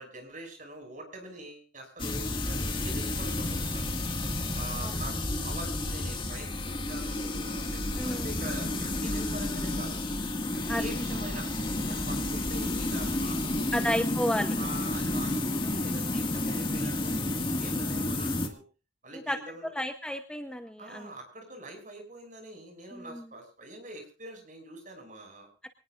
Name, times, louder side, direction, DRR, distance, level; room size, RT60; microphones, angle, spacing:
voice 1, 0.0-3.9 4.5-10.0 10.5-14.0 14.5-18.6 19.0-19.7 20.8-25.5, right 2 dB, 45° right, 4 dB, 6.2 m, -44 dB
sound 1, 2.0-18.5, left 2 dB, 25° left, 1.9 m, -31 dB
voice 2, 8.0-8.3 10.7-10.8 13.7-14.6 19.1-19.4 19.7-21.1 22.9-23.3 25.6-25.7, equal, 5° left, 6 dB, 0.8 m, -32 dB
24.5 x 18.5 x 2.5 m, 0.32 s
head